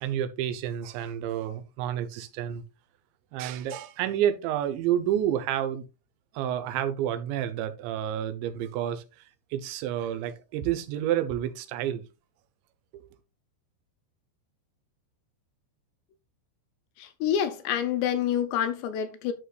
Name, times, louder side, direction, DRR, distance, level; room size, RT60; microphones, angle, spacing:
voice 1, 0.0-2.6 3.3-5.8 6.3-9.3 9.5-12.0 12.9-13.1, right 10 dB, 80° right, 3.0 m, -29 dB
voice 2, 17.0-19.3, left 9 dB, 80° left, 2.8 m, -27 dB
11.0 x 6.4 x 2.3 m
omnidirectional pair, 5.2 m